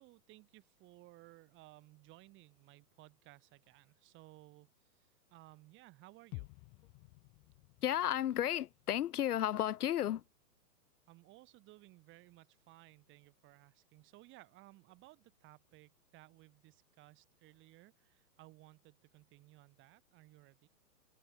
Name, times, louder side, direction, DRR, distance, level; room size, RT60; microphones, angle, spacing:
voice 1, 0.0-6.5 11.1-20.7, right 19 dB, 25° right, 7.8 m, -60 dB
sound 1, 6.3-10.3 10.6-10.7, left 40 dB or more, 25° left, 1.8 m, -54 dB
voice 2, 7.8-10.2, left 11 dB, 70° left, 1.0 m, -33 dB
hypercardioid pair, 150°, 48 cm